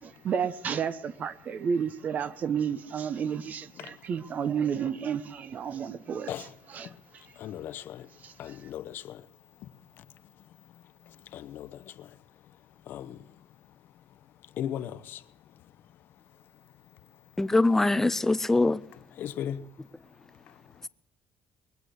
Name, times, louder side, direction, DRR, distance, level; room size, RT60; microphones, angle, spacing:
voice 1, 0.0-7.2 8.2-8.6, right 7 dB, 45° right, 0.9 m, -32 dB
voice 2, 7.4-8.0 8.4-9.2 11.3-11.7 12.9-13.1 14.6-15.2 19.2-19.6, left 10 dB, 65° left, 0.9 m, -36 dB
voice 3, 17.4-18.8, left 2 dB, 10° left, 0.6 m, -23 dB
21.5 x 8.1 x 8.0 m
cardioid pair, 125°, 4 cm